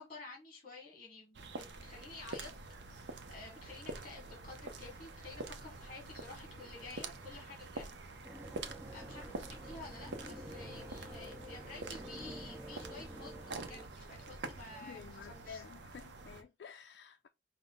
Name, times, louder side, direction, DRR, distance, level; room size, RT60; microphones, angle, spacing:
voice 1, 0.0-2.5 2.9-7.9 8.9-15.6, left 3 dB, 35° left, 1.4 m, -51 dB
sound 1, 1.3-16.4, right 3 dB, 80° right, 0.6 m, -47 dB
sound 2, 6.6-6.8 9.2-11.0 11.5-14.8, equal, 50° right, 0.8 m, -61 dB
sound 3, 8.2-13.9, equal, 15° right, 0.5 m, -49 dB
voice 2, 14.8-17.3, left 7 dB, 70° left, 0.3 m, -51 dB
5.0 x 2.1 x 3.8 m
head